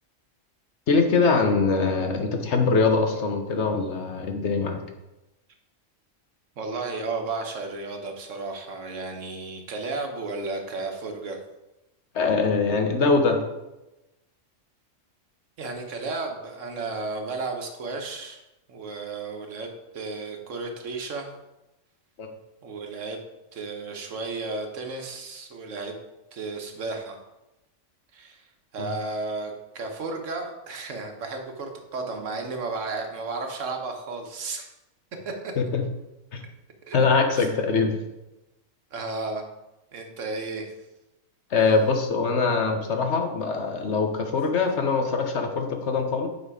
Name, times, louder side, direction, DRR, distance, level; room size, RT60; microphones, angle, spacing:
voice 1, 0.9-4.8 12.1-13.4 22.2-22.3 28.8-28.9 35.6-35.9 36.3-36.4 36.9-38.0 41.5-46.3, left 4 dB, 65° left, 5 dB, 1.2 m, -23 dB
voice 2, 6.6-11.4 15.6-18.4 18.7-19.7 19.9-21.3 22.6-23.2 23.5-25.9 26.3-27.2 28.1-28.5 28.7-34.7 35.2-35.5 36.9-37.0 37.3-37.8 38.9-39.4 39.9-40.7, right 3 dB, 75° right, 4 dB, 1.4 m, -33 dB
8.3 x 4.3 x 4.8 m, 0.98 s
omnidirectional pair, 1.3 m